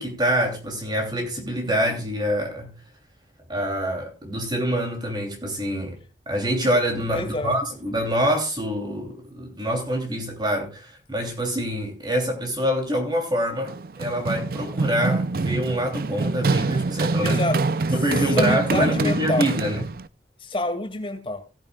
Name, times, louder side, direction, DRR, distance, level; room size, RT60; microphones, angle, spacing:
voice 1, 0.0-2.7 3.5-6.0 6.3-17.4 17.9-19.8, equal, 25° right, 2.9 m, -25 dB
voice 2, 7.1-7.6 17.2-17.6 18.1-19.5 20.4-21.4, left 2 dB, 30° left, 2.2 m, -27 dB
Run, 13.7-20.1, right 3 dB, 50° right, 0.5 m, -25 dB
17.5 x 10.5 x 2.3 m
head